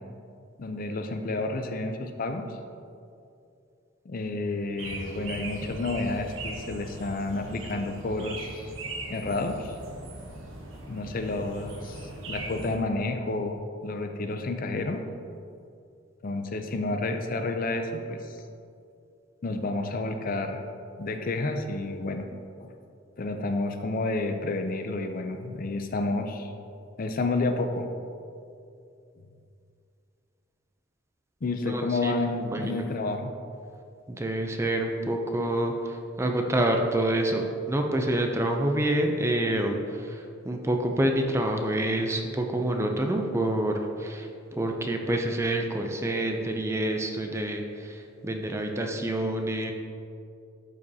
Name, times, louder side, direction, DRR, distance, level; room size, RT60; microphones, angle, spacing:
voice 1, 0.6-2.6 4.1-8.7 9.1-9.7 10.9-15.0 16.2-18.4 19.4-20.6 21.0-22.3 22.6-22.8 23.2-26.5 27.0-27.9 31.4-33.3, left 2 dB, 45° left, 6 dB, 0.5 m, -30 dB
sound 1, 4.8-12.8, right 2 dB, 70° right, 1.0 m, -39 dB
voice 2, 31.7-32.9 34.1-49.7, right 1 dB, 15° right, 3 dB, 0.5 m, -27 dB
12.0 x 5.0 x 2.8 m, 2.5 s
head